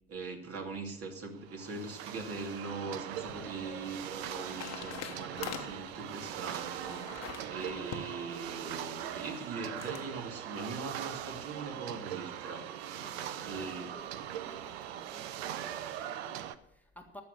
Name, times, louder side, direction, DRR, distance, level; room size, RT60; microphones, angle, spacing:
voice 1, 0.1-7.1 7.5-12.7 13.5-13.9, right 3 dB, 45° right, 3 dB, 2.6 m, -41 dB
sound 1, 1.3-16.5, right 11 dB, 70° right, 0.8 m, -41 dB
sound 2, 2.7-10.1, left 9 dB, 50° left, 1.4 m, -47 dB
voice 2, 3.2-3.6 12.9-17.2, left 1 dB, 5° left, 2 dB, 1.6 m, -54 dB
14.0 x 6.7 x 8.2 m, 0.80 s
hypercardioid pair, 65°, 33 cm